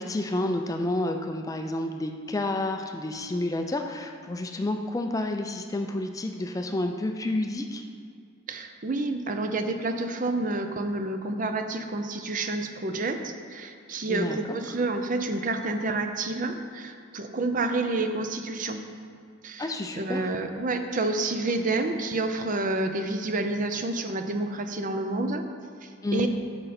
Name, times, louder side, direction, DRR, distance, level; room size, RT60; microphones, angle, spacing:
voice 1, 0.0-7.8 14.1-14.6 19.6-20.3 26.0-26.3, left 1 dB, 15° left, 5 dB, 0.4 m, -30 dB
voice 2, 8.5-18.8 19.4-25.4 25.8-26.3, right 2 dB, 40° right, 7 dB, 0.5 m, -29 dB
8.8 x 6.7 x 4.2 m, 2.3 s
head